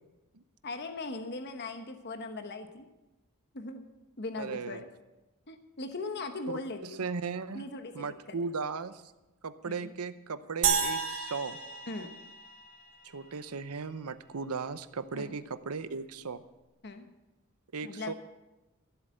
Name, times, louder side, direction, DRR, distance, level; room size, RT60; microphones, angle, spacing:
voice 1, 0.6-2.9 3.5-3.9 4.2-4.9 5.5-7.1 7.5-8.4 9.6-9.9 11.9-12.1 15.1-15.3 16.8-17.1 17.8-18.1, left 3 dB, 50° left, 8 dB, 1.0 m, -39 dB
voice 2, 4.4-4.8 6.8-7.7 7.9-9.1 9.4-11.6 13.0-16.4 17.7-18.1, right 4 dB, 85° right, 13 dB, 0.8 m, -37 dB
sound 1, 10.6-13.1, right 6 dB, 70° right, 2.4 m, -31 dB
14.5 x 8.1 x 7.8 m, 1.0 s
head